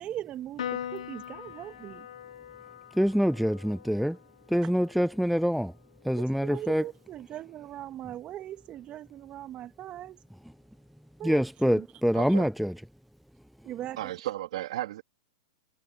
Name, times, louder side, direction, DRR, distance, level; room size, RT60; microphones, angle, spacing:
voice 1, 0.0-2.1 6.1-10.2 11.2-11.5 11.8-11.9 13.6-14.0, right 12 dB, 30° right, 2.7 m, -40 dB
Piano, 0.6-7.3, left 10 dB, 75° left, 1.2 m, -43 dB
voice 2, 3.0-4.2 4.5-5.7 6.1-6.8 11.2-12.7, equal, ahead, 0.4 m, -25 dB
voice 3, 12.1-12.5 14.0-15.0, right 14 dB, 65° right, 3.1 m, -34 dB
hypercardioid pair, 125°, 4 cm